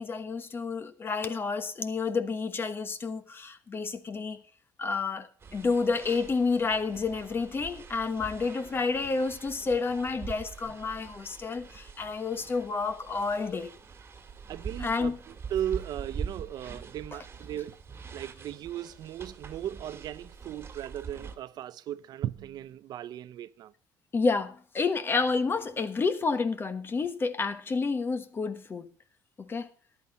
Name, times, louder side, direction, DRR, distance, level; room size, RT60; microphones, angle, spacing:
voice 1, 0.0-4.4 4.8-13.7 14.8-15.2 24.1-28.9 29.4-29.7, left 4 dB, 30° left, 1.2 m, -30 dB
sound 1, 5.4-21.4, right 5 dB, 30° right, 1.9 m, -44 dB
voice 2, 14.5-17.8 18.1-23.7, right 11 dB, 60° right, 0.6 m, -37 dB
14.0 x 11.0 x 4.2 m
cardioid pair, 125°, 8 cm